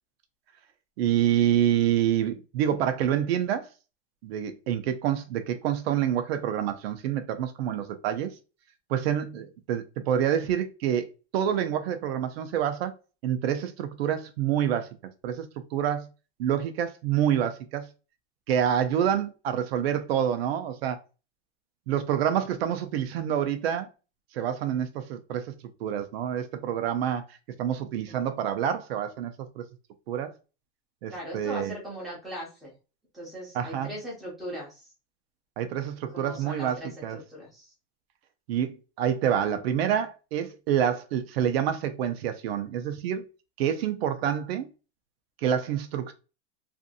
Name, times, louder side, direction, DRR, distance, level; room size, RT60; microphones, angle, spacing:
voice 1, 1.0-3.7 4.2-8.3 8.9-12.9 13.2-14.9 15.2-16.1 16.4-17.9 18.5-21.0 21.9-23.9 24.3-25.5 25.8-29.6 30.1-30.3 31.0-31.7 33.5-33.9 35.6-37.2 38.5-43.2 43.6-44.7 45.4-46.1, right 9 dB, 70° right, 0.5 m, -27 dB
voice 2, 31.1-32.7 33.1-34.9 36.1-37.7, equal, ahead, 0.7 m, -39 dB
2.6 x 2.5 x 2.5 m
supercardioid pair, 180°, 32 cm